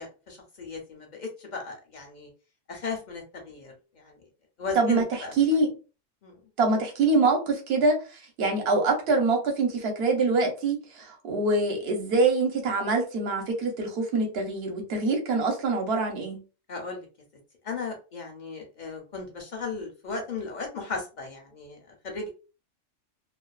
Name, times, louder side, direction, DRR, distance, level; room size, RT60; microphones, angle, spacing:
voice 1, 0.0-2.3 2.7-4.2 4.6-5.4 6.2-6.4 16.7-17.1 17.6-22.3, left 4 dB, 50° left, 2 dB, 0.5 m, -36 dB
voice 2, 5.4-5.7 6.6-16.4, right 3 dB, 60° right, 3 dB, 0.9 m, -24 dB
2.4 x 2.3 x 2.3 m, 0.33 s
omnidirectional pair, 1.3 m